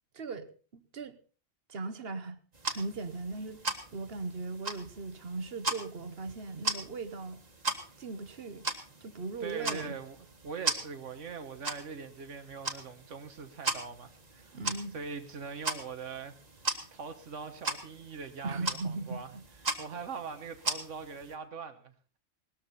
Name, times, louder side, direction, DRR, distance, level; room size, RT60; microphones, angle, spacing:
voice 1, 0.1-1.2 1.7-2.4 2.7-3.6 3.9-7.4 8.0-8.7 9.0-10.0 14.5-14.9 18.4-19.4, right 3 dB, 55° right, 1.2 m, -38 dB
sound 1, 2.5-21.3, right 2 dB, 35° right, 1.7 m, -39 dB
voice 2, 9.4-14.6 14.9-16.4 16.9-19.3 19.8-21.9, right 5 dB, 85° right, 1.5 m, -42 dB
19.0 x 13.5 x 4.1 m
omnidirectional pair, 1.2 m